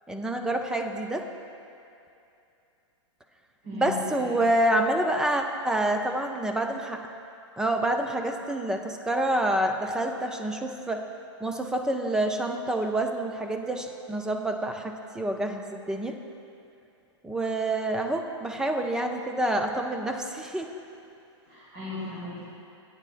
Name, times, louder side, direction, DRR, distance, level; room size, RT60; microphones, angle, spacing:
voice 1, 0.1-1.3 3.7-7.0 7.6-11.0 11.4-16.2 17.2-20.7, right 1 dB, 5° right, 4 dB, 0.4 m, -27 dB
voice 2, 3.6-3.9 4.2-4.5 21.5-22.4, left 2 dB, 35° right, -7 dB, 2.0 m, -37 dB
15.0 x 9.0 x 2.5 m, 2.7 s
hypercardioid pair, 145°, 16 cm